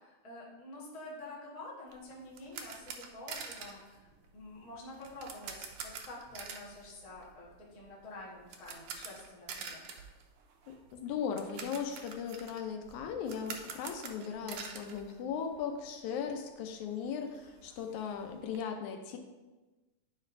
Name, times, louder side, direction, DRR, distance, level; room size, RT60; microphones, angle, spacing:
voice 1, 0.0-10.1, left 2 dB, 55° left, -5 dB, 0.4 m, -48 dB
sound 1, 1.9-15.9 16.1-16.3 16.7-16.8 17.0-18.6, right 6 dB, 85° right, 1.3 m, -47 dB
voice 2, 10.7-19.2, left 7 dB, 85° left, 5 dB, 2.1 m, -38 dB
9.3 x 5.2 x 2.6 m, 1.2 s
omnidirectional pair, 3.3 m